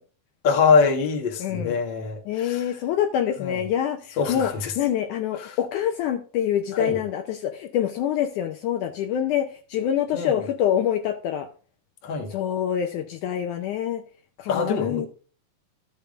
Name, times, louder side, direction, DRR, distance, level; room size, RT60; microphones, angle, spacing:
voice 1, 0.4-2.6 3.4-3.6 4.2-4.7 5.4-5.5 6.7-7.0 10.1-10.4 12.0-12.3 14.5-15.1, left 5 dB, 50° left, 1.5 m, -23 dB
voice 2, 1.4-1.8 2.3-4.5 4.8-11.5 12.3-14.0 14.4-15.1, left 10 dB, 75° left, 2.0 m, -26 dB
14.0 x 6.8 x 2.5 m
omnidirectional pair, 4.0 m